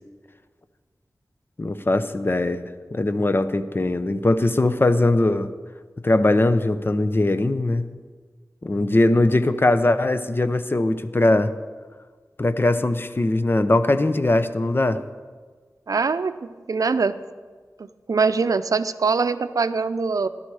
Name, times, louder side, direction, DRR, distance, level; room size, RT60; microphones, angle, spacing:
voice 1, 1.6-2.6 2.9-5.5 6.0-7.9 8.6-11.5 12.4-15.0, left 2 dB, 35° left, 11 dB, 0.8 m, -20 dB
voice 2, 15.9-16.3 16.7-17.2 18.1-20.3, right 4 dB, 70° right, 12 dB, 0.6 m, -22 dB
16.0 x 12.0 x 4.9 m, 1.5 s
wide cardioid pair, 80°, 6 cm